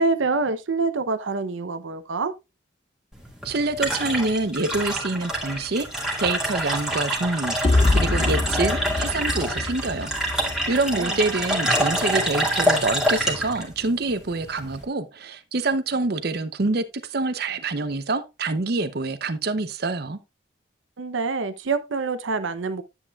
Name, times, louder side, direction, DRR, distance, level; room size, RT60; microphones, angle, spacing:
voice 1, 0.0-2.3 10.9-11.2 21.0-22.8, right 3 dB, 90° right, 0.7 m, -26 dB
sound 1, 3.1-14.8, equal, 5° right, 1.9 m, -26 dB
voice 2, 3.4-5.9 6.2-20.2, right 3 dB, 55° right, 0.7 m, -26 dB
sound 2, 7.6-11.5, left 2 dB, 30° left, 0.4 m, -24 dB
Drum, 15.2-15.4, equal, 30° right, 1.9 m, -43 dB
9.8 x 8.2 x 2.3 m
head